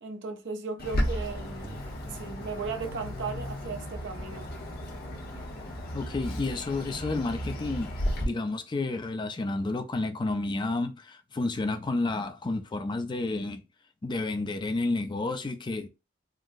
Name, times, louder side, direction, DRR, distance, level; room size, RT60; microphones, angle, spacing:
voice 1, 0.0-1.8 2.1-4.5, right 4 dB, 65° right, 0.6 m, -36 dB
Bird, 0.8-8.2, equal, 50° left, 0.8 m, -34 dB
voice 2, 5.9-7.9 8.2-13.6 14.0-15.9, left 2 dB, 25° left, 0.3 m, -30 dB
3.8 x 2.0 x 2.5 m
head